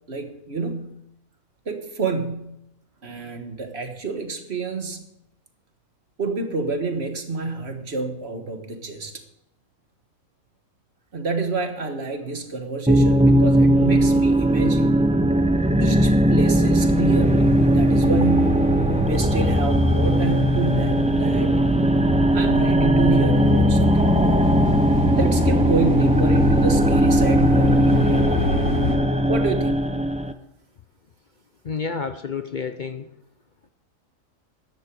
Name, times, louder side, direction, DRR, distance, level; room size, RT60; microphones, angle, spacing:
voice 1, 0.1-1.0 1.6-2.6 3.0-5.0 6.2-9.2 11.1-15.0 15.8-18.7 19.0-21.5 22.3-24.5 25.2-28.3 29.3-29.9, right 3 dB, 50° right, 6 dB, 1.7 m, -28 dB
sound 1, 12.9-30.3, right 1 dB, 10° right, 0.3 m, -19 dB
sound 2, 16.8-28.9, left 2 dB, 85° left, 5.0 m, -27 dB
voice 2, 31.6-33.1, left 5 dB, 45° left, 9 dB, 0.6 m, -29 dB
13.5 x 10.5 x 4.7 m, 0.83 s
omnidirectional pair, 1.4 m